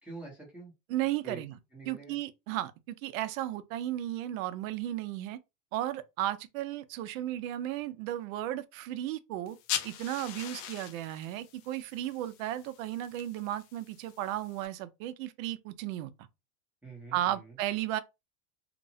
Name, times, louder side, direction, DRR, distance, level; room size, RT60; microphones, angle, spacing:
voice 1, 0.0-0.7 1.2-1.4 1.7-2.2 16.8-17.6, right 3 dB, 5° right, 0.7 m, -46 dB
voice 2, 0.9-1.5 1.9-5.4 5.7-9.6 9.8-16.1 17.1-18.0, right 13 dB, 70° right, 0.5 m, -34 dB
sound 1, 9.5-14.7, left 10 dB, 45° left, 0.4 m, -41 dB
2.9 x 2.0 x 2.7 m
supercardioid pair, 150°, 42 cm